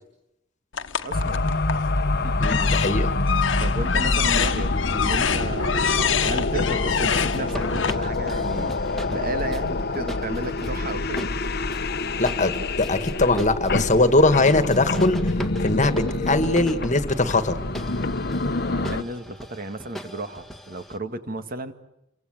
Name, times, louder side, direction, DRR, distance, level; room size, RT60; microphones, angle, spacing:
sound 1, 0.7-1.9 2.4-7.9, left 8 dB, 70° left, 1.4 m, -26 dB
voice 1, 1.0-1.5 2.2-2.3 3.6-11.3 18.7-21.7, right 2 dB, 45° right, 8 dB, 2.0 m, -33 dB
sound 2, 1.1-19.0, left 2 dB, 55° left, 1.1 m, -26 dB
voice 2, 2.4-3.1 12.2-15.3 15.6-15.9 16.2-17.6, left 2 dB, 40° left, 10 dB, 1.8 m, -21 dB
sound 3, 7.3-21.0, equal, ahead, 1.9 m, -39 dB
29.0 x 24.0 x 7.8 m, 0.83 s
head